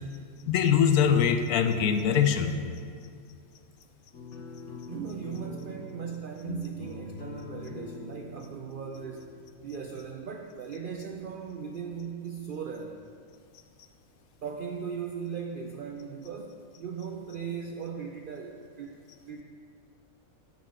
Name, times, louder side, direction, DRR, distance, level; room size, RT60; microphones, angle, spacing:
voice 1, 0.5-2.5, left 8 dB, 90° left, 8 dB, 1.1 m, -23 dB
sound 1, 4.1-10.0, left 2 dB, 55° left, 1.3 m, -43 dB
voice 2, 4.9-9.3 9.6-13.0 14.4-19.0 19.3-19.4, right 6 dB, 80° right, 4 dB, 0.4 m, -38 dB
8.1 x 5.4 x 6.6 m, 2.2 s
omnidirectional pair, 1.5 m